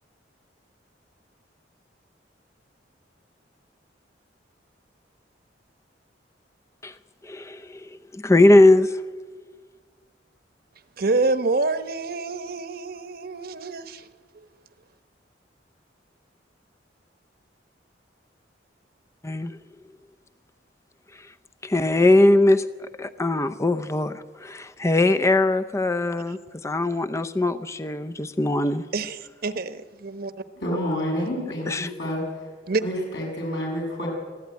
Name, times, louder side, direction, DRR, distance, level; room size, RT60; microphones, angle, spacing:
voice 1, 7.2-9.0 19.2-19.6 21.1-21.3 21.6-22.6 23.0-28.9 31.7-31.9, left 2 dB, 15° left, 0.6 m, -20 dB
voice 2, 11.0-14.1 14.3-14.5 28.9-30.4 31.2-31.3 32.7-32.8, right 3 dB, 55° right, 1.0 m, -27 dB
voice 3, 30.6-32.5 32.8-34.1, equal, 70° left, 7.0 m, -29 dB
24.0 x 15.0 x 9.4 m
head